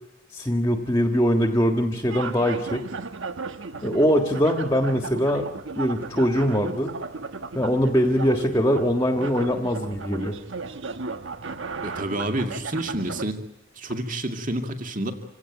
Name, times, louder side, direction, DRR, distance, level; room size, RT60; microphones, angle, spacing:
voice 1, 0.3-2.8 3.8-5.5 5.7-6.9 7.5-10.4, equal, 15° left, 5 dB, 1.6 m, -22 dB
sound 1, 2.1-13.3, right 4 dB, 65° right, 1.2 m, -35 dB
voice 2, 11.8-13.4 13.8-15.1, right 1 dB, 40° right, 5 dB, 2.3 m, -29 dB
27.0 x 17.0 x 9.3 m, 0.92 s
head